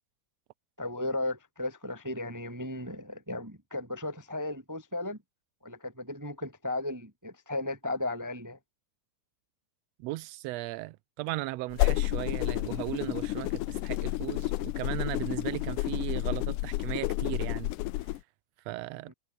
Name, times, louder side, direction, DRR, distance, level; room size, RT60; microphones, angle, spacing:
voice 1, 0.8-5.2 5.6-8.6 19.1-19.2, left 2 dB, 15° right, 0.7 m, -35 dB
voice 2, 10.0-17.7 18.6-19.1, right 19 dB, 80° right, 1.5 m, -37 dB
sound 1, 11.7-18.2, left 17 dB, 85° left, 2.3 m, -30 dB
omnidirectional pair, 3.6 m